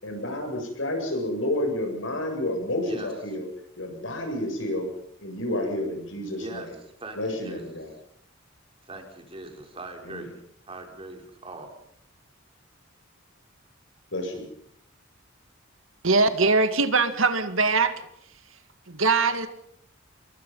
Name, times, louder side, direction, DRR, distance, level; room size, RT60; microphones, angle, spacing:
voice 1, 0.0-3.5 3.8-4.9 5.2-6.7 7.2-7.9 10.0-10.3 14.1-14.4, left 1 dB, 70° left, 3 dB, 7.8 m, -30 dB
voice 2, 6.4-6.7 7.0-7.6 8.9-10.3 10.7-11.7, right 2 dB, 30° right, 3 dB, 4.4 m, -40 dB
voice 3, 16.0-17.9 18.9-19.5, right 3 dB, 80° right, 9 dB, 2.1 m, -21 dB
27.0 x 22.0 x 5.7 m, 0.68 s
head